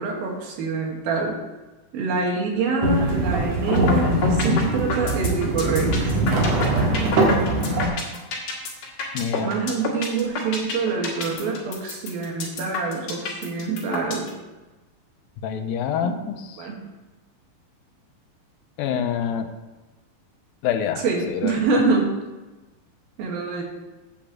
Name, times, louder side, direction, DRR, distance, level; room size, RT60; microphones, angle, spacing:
voice 1, 0.0-1.4 1.9-7.4 9.4-14.3 16.0-16.2 16.6-16.8 21.0-22.2 23.2-23.6, right 4 dB, 85° right, 0 dB, 3.4 m, -26 dB
sound 1, 2.8-7.9, right 1 dB, 55° right, 2.5 m, -22 dB
sound 2, 3.7-3.9 4.2-14.3, left 5 dB, 60° left, 3.1 m, -29 dB
voice 2, 9.1-9.5 15.4-16.6 18.8-19.5 20.6-21.6, left 8 dB, 90° left, 7 dB, 2.5 m, -26 dB
8.5 x 5.3 x 7.3 m, 1.1 s
omnidirectional pair, 4.1 m